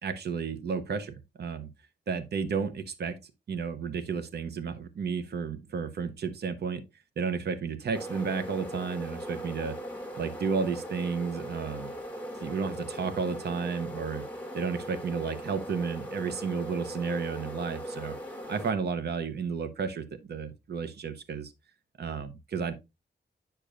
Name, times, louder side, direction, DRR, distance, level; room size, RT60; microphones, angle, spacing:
voice 1, 0.0-1.7 2.1-6.8 7.2-9.8 10.2-11.9 12.4-14.2 14.5-18.2 18.5-21.5 22.0-22.7, right 5 dB, 65° right, 0.7 m, -32 dB
sound 1, 7.9-18.7, equal, 10° left, 1.4 m, -39 dB
8.9 x 6.6 x 2.5 m
wide cardioid pair, 175°, 18 cm